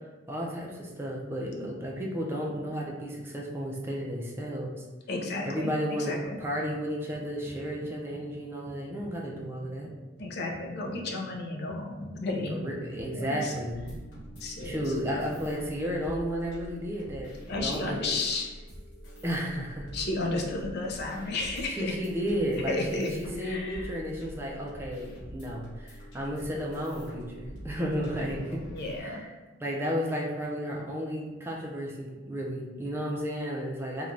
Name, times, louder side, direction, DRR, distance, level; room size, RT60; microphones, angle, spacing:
voice 1, 0.3-4.7 5.4-9.9 12.5-13.8 14.6-18.2 19.2-19.9 21.7-28.6 29.0-29.3 29.6-34.1, equal, 10° right, -2 dB, 0.4 m, -33 dB
voice 2, 5.1-6.4 10.2-12.6 13.1-13.5 14.4-15.1 17.5-18.5 19.9-21.9 22.7-23.1 23.4-23.9 28.7-29.2, left 2 dB, 60° left, 1 dB, 0.5 m, -33 dB
sound 1, 6.2-6.9 7.1-16.0, right 2 dB, 80° right, 0.5 m, -49 dB
sound 2, 13.6-29.0, equal, 85° left, 1.2 m, -45 dB
3.1 x 2.2 x 2.5 m, 1.2 s
head